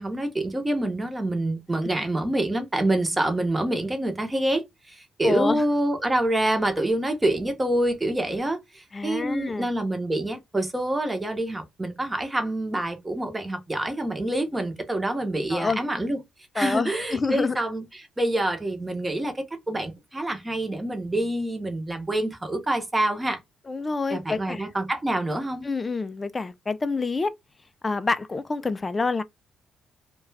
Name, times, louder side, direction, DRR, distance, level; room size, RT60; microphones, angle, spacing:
voice 1, 0.0-16.2 16.5-23.4 24.1-25.7, right 1 dB, 15° right, 0.8 m, -26 dB
voice 2, 5.2-5.6 8.9-9.7 15.5-15.8 16.6-17.6 23.7-24.6 25.6-27.3 27.8-29.2, left 4 dB, 25° left, 0.3 m, -27 dB
2.3 x 2.2 x 3.1 m
cardioid pair, 90°, 0 cm